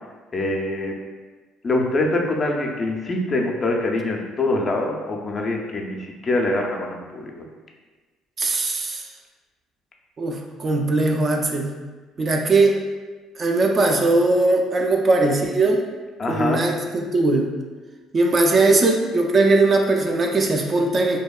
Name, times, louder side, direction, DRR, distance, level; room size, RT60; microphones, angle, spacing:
voice 1, 0.3-1.0 1.6-7.3 16.2-16.6, left 2 dB, 35° left, 0 dB, 0.4 m, -24 dB
voice 2, 8.4-9.1 10.2-11.7 12.2-12.8 13.4-15.8 16.3-17.5 18.1-21.2, right 2 dB, 35° right, 2 dB, 0.3 m, -19 dB
2.7 x 2.2 x 2.2 m, 1.3 s
cardioid pair, 95°, 0 cm